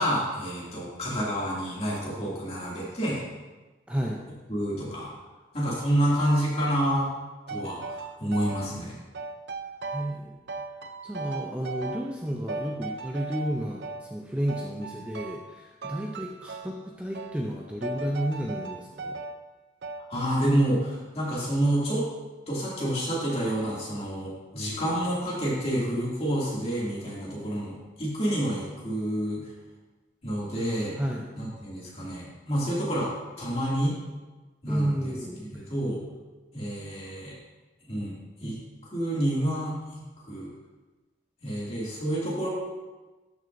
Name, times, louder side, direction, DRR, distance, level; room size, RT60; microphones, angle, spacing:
voice 1, 0.0-3.2 4.5-5.1 5.5-7.1 7.5-8.9 20.1-22.1 22.5-29.4 30.2-31.0 31.4-33.1 33.4-34.0 34.6-35.1 35.5-36.0 36.5-37.3 37.9-38.1 38.4-38.6 38.9-39.7 40.3-40.5 41.4-42.5, equal, 35° left, -6 dB, 2.4 m, -28 dB
voice 2, 3.9-4.2 9.9-10.4 11.0-19.2 30.9-31.3 34.7-35.6, equal, 5° right, -1 dB, 0.5 m, -32 dB
sound 1, 7.5-8.7 9.1-10.2 10.5-12.2 12.5-14.1 14.5-15.5 15.8-16.8 17.1-17.4 17.8-19.4 19.8-20.2, right 3 dB, 70° right, 0.5 m, -37 dB
12.5 x 6.1 x 2.6 m, 1.2 s
head